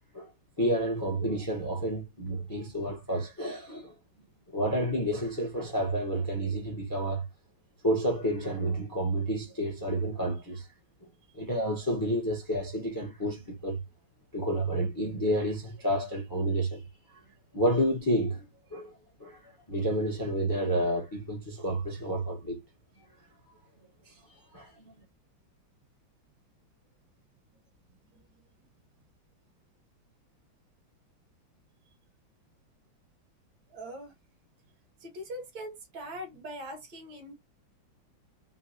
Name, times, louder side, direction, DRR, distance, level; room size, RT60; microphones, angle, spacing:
voice 1, 0.6-3.9 4.5-7.2 7.8-10.7 11.3-13.8 14.3-16.8 17.5-18.5 18.7-18.9 19.2-19.4 19.7-22.6 24.5-24.9, right 1 dB, 20° left, 0.6 m, -30 dB
voice 2, 33.7-34.1 35.0-37.3, equal, 60° right, 1.4 m, -42 dB
3.9 x 2.2 x 2.6 m
omnidirectional pair, 2.2 m